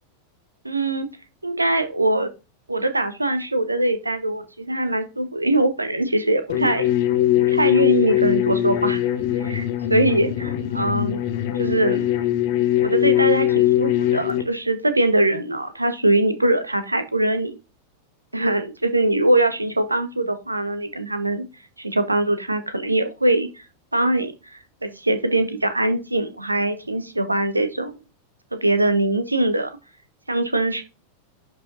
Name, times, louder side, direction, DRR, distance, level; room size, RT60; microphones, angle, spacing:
voice 1, 0.6-1.1 1.4-2.3 2.7-6.9 7.3-9.0 9.4-11.2 11.6-12.1 12.8-17.6 18.3-21.5 21.8-23.7 23.9-27.9 28.5-29.7 30.3-30.8, right 2 dB, 85° right, 10 dB, 1.0 m, -22 dB
sound 1, 6.5-14.4, left 13 dB, 50° left, 1.1 m, -21 dB
11.0 x 4.9 x 2.6 m, 0.30 s
figure-of-eight pair, 90°, 0 cm